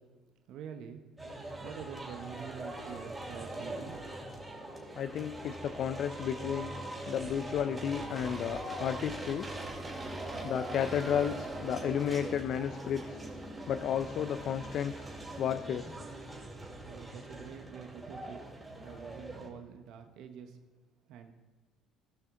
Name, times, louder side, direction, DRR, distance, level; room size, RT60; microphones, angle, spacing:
voice 1, 0.5-1.0 1.6-4.0 16.8-18.4 18.8-20.6 21.1-21.3, right 8 dB, 70° right, 6 dB, 0.8 m, -46 dB
sound 1, 1.2-19.5, right 1 dB, 15° right, 2.8 m, -42 dB
voice 2, 5.0-6.7 7.1-9.5 10.4-13.2 13.7-15.0 15.4-15.9, left 8 dB, 60° left, 10 dB, 0.4 m, -32 dB
17.5 x 5.8 x 3.7 m, 1.3 s
supercardioid pair, 90°, 0 cm